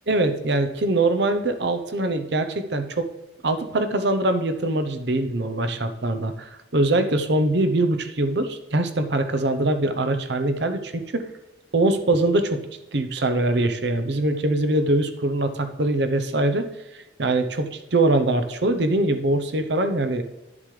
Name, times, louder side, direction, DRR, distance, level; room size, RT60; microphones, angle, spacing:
voice 1, 0.1-3.1 3.4-11.3 11.7-12.6 12.9-16.7 17.2-20.2, right 2 dB, 65° right, 8 dB, 0.8 m, -23 dB
11.0 x 7.2 x 3.3 m, 0.99 s
head